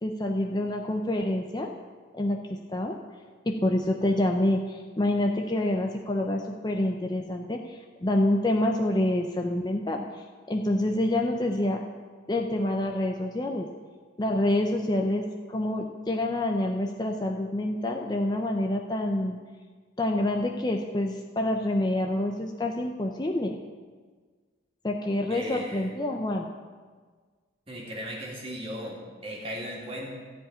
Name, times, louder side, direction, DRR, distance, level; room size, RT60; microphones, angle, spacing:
voice 1, 0.0-1.7 2.1-3.0 3.4-11.8 12.3-13.7 14.2-15.2 15.5-19.4 20.0-23.6 24.8-26.5, left 1 dB, 20° left, 2 dB, 0.6 m, -27 dB
voice 2, 25.3-25.9 27.7-30.1, equal, 30° right, -2 dB, 2.2 m, -37 dB
13.5 x 4.9 x 8.7 m, 1.5 s
head